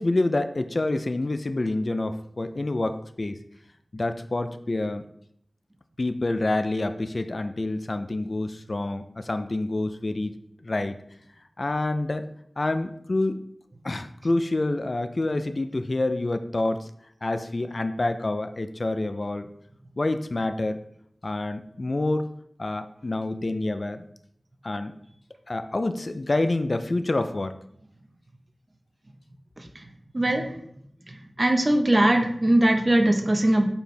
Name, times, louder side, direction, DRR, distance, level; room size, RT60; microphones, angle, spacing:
voice 1, 0.0-3.4 3.9-5.0 6.0-10.3 10.6-10.9 11.6-12.2 12.6-13.4 13.8-16.9 17.2-19.5 20.0-20.8 21.2-22.3 22.6-24.0 24.6-24.9 25.5-27.6, left 2 dB, 55° left, 9 dB, 0.5 m, -27 dB
voice 2, 30.1-30.5 31.4-33.7, right 1 dB, 40° right, 4 dB, 1.0 m, -20 dB
7.1 x 4.4 x 3.4 m, 0.69 s
cardioid pair, 40°, 0 cm